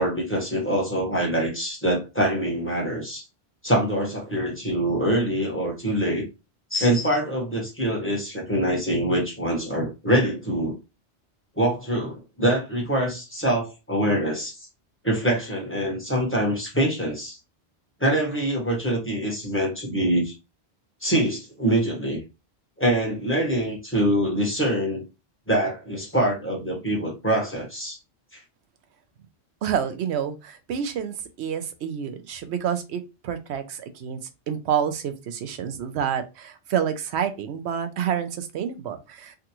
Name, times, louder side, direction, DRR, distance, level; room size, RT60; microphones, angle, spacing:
voice 1, 0.0-3.2 3.6-6.2 6.7-10.8 11.6-14.5 15.0-17.4 18.0-20.3 21.0-22.2 22.8-25.0 25.5-28.0 28.3-28.4, right 1 dB, 10° left, 1.2 m, -24 dB
voice 2, 29.6-34.2 34.5-39.4, right 8 dB, 90° right, 0.9 m, -28 dB
3.5 x 2.4 x 2.9 m
omnidirectional pair, 1.1 m